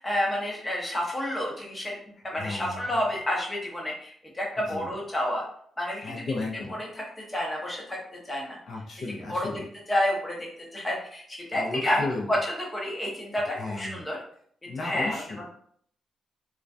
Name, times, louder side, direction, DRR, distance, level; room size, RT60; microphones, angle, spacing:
voice 1, 0.0-1.9 2.2-5.4 5.8-6.1 6.7-8.6 9.3-9.5 9.9-14.2 14.8-15.5, left 1 dB, 20° left, -2 dB, 0.8 m, -30 dB
voice 2, 2.4-2.9 4.7-4.9 6.0-6.8 8.7-9.6 11.5-12.3 13.6-14.0 14.7-15.4, left 3 dB, 60° left, -2 dB, 0.5 m, -34 dB
2.2 x 2.2 x 2.5 m, 0.62 s
cardioid pair, 110°, 0 cm